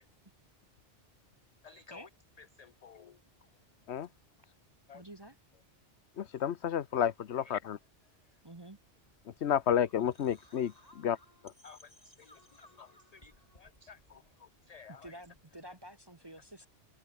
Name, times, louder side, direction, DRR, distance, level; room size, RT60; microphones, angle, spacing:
voice 1, 1.6-2.1 2.4-3.2 4.9-5.0 7.4-7.5 11.6-15.2, left 6 dB, 50° left, 0.5 m, -55 dB
voice 2, 4.9-5.3 8.4-8.8 14.9-16.7, right 1 dB, 20° right, 1.3 m, -49 dB
voice 3, 6.2-7.8 9.4-10.7 11.0-11.2, left 9 dB, 70° left, 1.1 m, -30 dB
sound 1, 9.0-15.7, left 1 dB, 30° left, 6.2 m, -62 dB
omnidirectional pair, 1.2 m